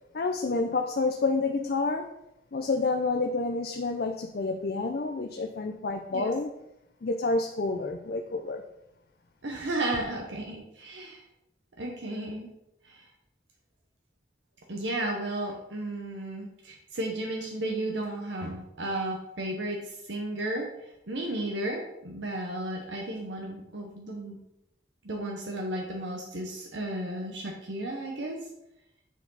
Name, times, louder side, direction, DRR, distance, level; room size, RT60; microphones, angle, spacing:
voice 1, 0.1-2.1 2.5-6.5 7.0-8.6, left 3 dB, 55° left, 4 dB, 0.5 m, -29 dB
voice 2, 9.4-11.2 11.8-12.5 12.8-13.0 14.7-24.4 25.0-28.4, right 1 dB, 80° right, 0 dB, 1.0 m, -34 dB
9.2 x 4.6 x 4.0 m, 0.85 s
head